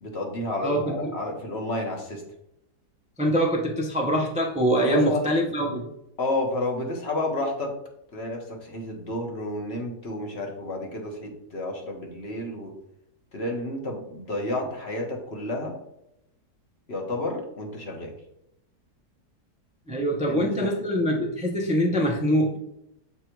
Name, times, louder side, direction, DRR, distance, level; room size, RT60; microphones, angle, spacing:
voice 1, 0.0-2.2 4.8-5.3 6.2-7.8 8.1-12.7 13.3-15.7 16.9-18.1 20.3-20.7, left 2 dB, 45° left, 2 dB, 1.2 m, -31 dB
voice 2, 0.6-1.1 3.2-5.9 19.9-22.6, equal, 10° right, 1 dB, 0.4 m, -24 dB
7.7 x 3.5 x 4.5 m, 0.82 s
omnidirectional pair, 1.8 m